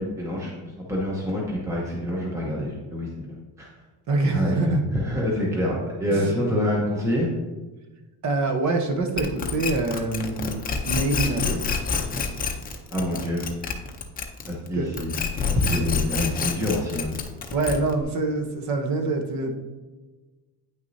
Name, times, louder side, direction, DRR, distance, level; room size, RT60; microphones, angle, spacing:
voice 1, 0.0-3.7 4.3-7.3 10.4-10.5 12.9-13.5 14.5-15.1 15.5-17.1, left 1 dB, 5° right, -3 dB, 0.9 m, -26 dB
voice 2, 4.1-4.8 6.1-6.4 8.2-10.6 10.8-11.8 14.8-14.9 17.5-19.5, right 2 dB, 45° right, 4 dB, 1.0 m, -25 dB
sound 1, 9.2-14.7 14.9-18.0, left 5 dB, 20° left, 0.6 m, -27 dB
9.2 x 6.1 x 2.7 m, 1.2 s
cardioid pair, 165°, 40 cm